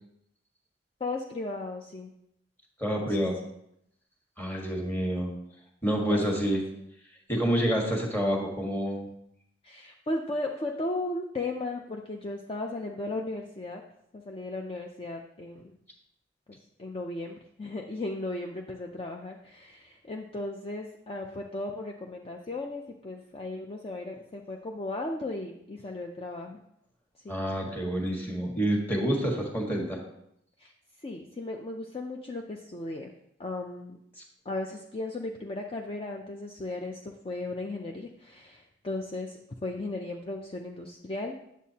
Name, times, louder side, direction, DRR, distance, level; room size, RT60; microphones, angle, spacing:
voice 1, 1.0-2.1 6.1-6.2 6.7-6.9 9.6-13.8 14.1-15.7 16.5-26.6 27.2-27.4 30.6-30.7 31.0-33.1 33.4-34.0 34.5-41.4, left 2 dB, 30° left, 1 dB, 0.5 m, -36 dB
voice 2, 2.8-3.4 4.4-5.3 5.8-6.6 7.3-9.1 27.3-30.0, equal, 10° left, 0 dB, 1.4 m, -28 dB
9.2 x 7.2 x 2.8 m, 0.76 s
head